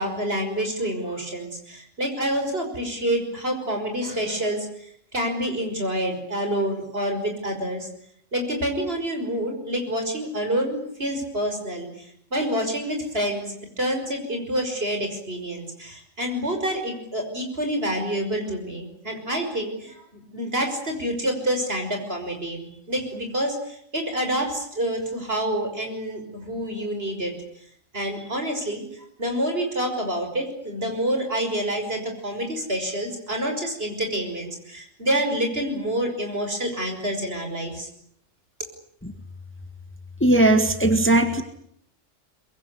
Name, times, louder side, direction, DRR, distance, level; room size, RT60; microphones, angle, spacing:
voice 1, 0.0-7.9 8.3-27.3 27.9-37.9, right 1 dB, 50° right, 4 dB, 6.3 m, -28 dB
voice 2, 40.2-41.4, right 1 dB, 10° left, 7 dB, 1.9 m, -18 dB
24.0 x 22.0 x 9.9 m, 0.68 s
omnidirectional pair, 1.3 m